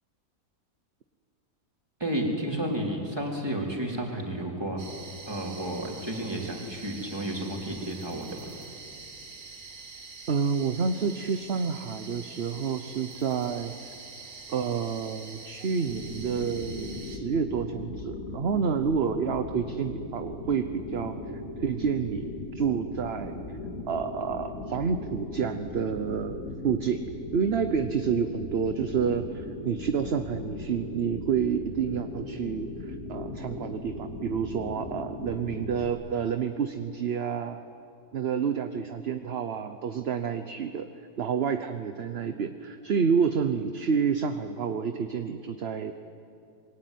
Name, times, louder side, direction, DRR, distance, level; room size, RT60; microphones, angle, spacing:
voice 1, 2.0-4.8 5.3-8.5, right 1 dB, 15° right, -1 dB, 4.1 m, -32 dB
sound 1, 4.8-17.2, right 4 dB, 65° right, 2.7 m, -45 dB
voice 2, 10.3-13.7 14.5-23.4 23.9-27.0 27.3-37.6 38.1-40.9 41.2-45.9, right 6 dB, 45° right, 8 dB, 1.0 m, -29 dB
sound 2, 15.9-35.9, left 2 dB, 50° left, 2.9 m, -38 dB
26.5 x 22.5 x 9.4 m, 2.6 s
omnidirectional pair, 1.7 m